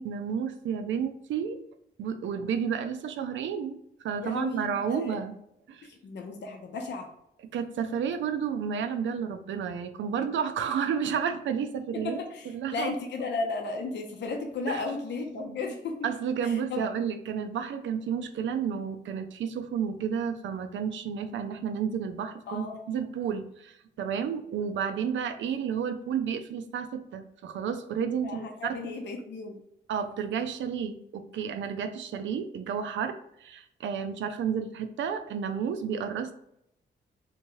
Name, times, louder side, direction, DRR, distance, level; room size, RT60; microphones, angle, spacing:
voice 1, 0.0-1.6 2.0-5.4 5.7-5.9 7.5-12.2 12.5-12.9 14.7-14.8 15.4-15.6 16.0-28.7 29.9-36.3, right 7 dB, 85° right, 7 dB, 0.4 m, -31 dB
voice 2, 4.2-5.2 5.9-7.1 12.1-16.1 16.4-16.8 22.5-23.0 28.2-29.6, left 3 dB, 70° left, 2 dB, 0.6 m, -35 dB
3.5 x 2.8 x 3.0 m, 0.77 s
cardioid pair, 105°, 19 cm